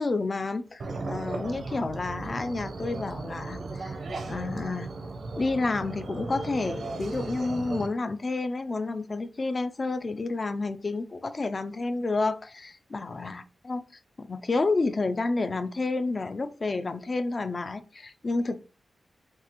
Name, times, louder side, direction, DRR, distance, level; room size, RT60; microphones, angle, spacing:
voice 1, 0.0-4.0 4.3-4.9 5.4-13.8 14.2-18.6, left 3 dB, 30° left, 0.3 m, -30 dB
sound 1, 0.8-7.9, right 3 dB, 60° right, 0.7 m, -36 dB
5.9 x 2.4 x 2.9 m
wide cardioid pair, 170°, 0 cm